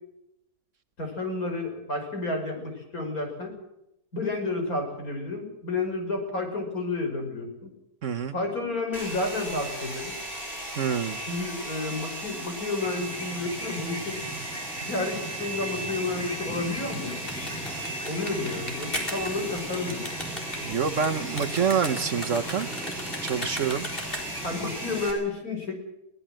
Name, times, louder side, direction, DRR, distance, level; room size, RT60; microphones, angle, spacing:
voice 1, 1.0-3.6 4.1-7.7 8.3-10.1 11.3-14.3 14.9-17.2 18.0-20.0 24.4-25.7, left 2 dB, 65° left, 3 dB, 5.8 m, -31 dB
voice 2, 8.0-8.3 10.8-11.2 20.6-22.7 23.2-23.9 24.3-24.4, right 6 dB, 55° right, 7 dB, 1.3 m, -27 dB
Domestic sounds home sounds, 8.9-25.1, right 1 dB, 15° right, 7.6 m, -37 dB
sound 1, 12.8-25.0, right 1 dB, 5° left, 2.5 m, -39 dB
sound 2, 16.8-24.5, left 1 dB, 35° left, 4.3 m, -37 dB
22.0 x 18.5 x 7.6 m, 0.84 s
omnidirectional pair, 1.7 m